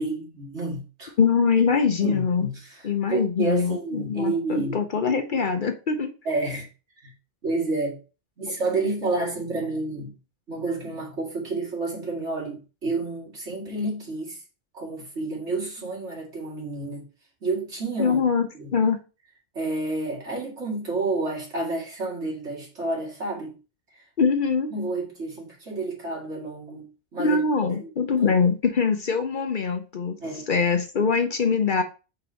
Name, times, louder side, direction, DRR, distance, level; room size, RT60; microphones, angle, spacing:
voice 1, 0.0-1.1 2.0-4.8 6.2-6.7 7.0-7.1 7.4-8.0 8.4-10.1 10.5-14.4 14.7-17.1 17.4-18.3 18.5-18.7 19.5-23.6 23.9-24.0 24.7-27.9 28.2-28.3 30.2-30.6, right 2 dB, 75° right, 2.6 m, -30 dB
voice 2, 1.2-2.5 2.8-6.1 18.0-18.5 18.7-19.0 24.2-24.7 27.2-30.2 30.5-31.8, left 5 dB, 50° left, 0.8 m, -23 dB
5.2 x 4.6 x 3.9 m
omnidirectional pair, 1.2 m